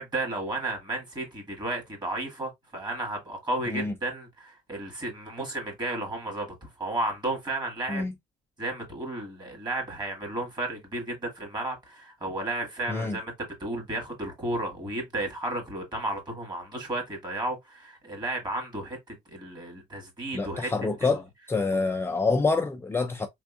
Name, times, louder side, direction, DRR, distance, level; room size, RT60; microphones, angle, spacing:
voice 1, 0.0-8.1 8.6-20.7 21.1-21.2 21.7-21.8, right 2 dB, 25° right, 1.9 m, -33 dB
voice 2, 20.3-21.2 21.5-23.3, left 3 dB, 15° left, 0.4 m, -26 dB
3.5 x 3.5 x 2.3 m
cardioid pair, 110°, 17 cm